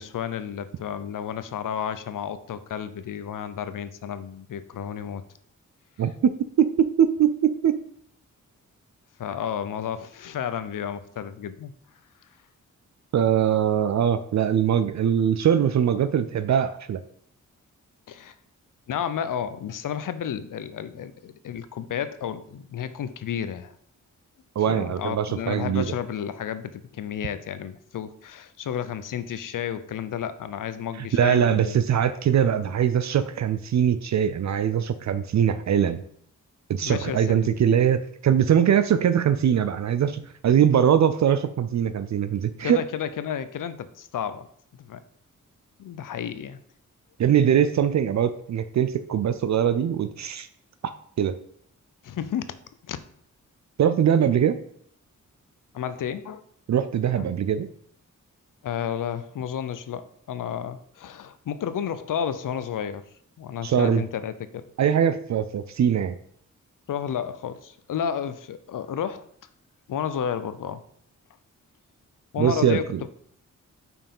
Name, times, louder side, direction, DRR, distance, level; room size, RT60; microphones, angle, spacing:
voice 1, 0.0-5.2 9.2-11.7 18.1-18.3 18.9-23.7 24.7-31.8 36.8-37.7 42.6-44.5 44.8-45.0 45.8-46.6 52.0-52.5 52.9-53.0 55.7-56.4 57.2-57.3 58.6-63.0 63.4-64.7 66.9-69.2 69.9-70.8 72.3-73.1, left 8 dB, 75° left, 13 dB, 0.6 m, -32 dB
voice 2, 6.0-7.8 13.1-17.0 24.6-25.9 31.1-36.0 36.7-42.8 47.2-50.5 50.8-50.9 51.2-51.4 53.8-54.6 56.7-57.7 63.6-64.0 64.8-66.2 72.4-73.0, right 9 dB, 60° right, 12 dB, 0.5 m, -22 dB
5.5 x 4.6 x 5.4 m, 0.65 s
wide cardioid pair, 100°, 32 cm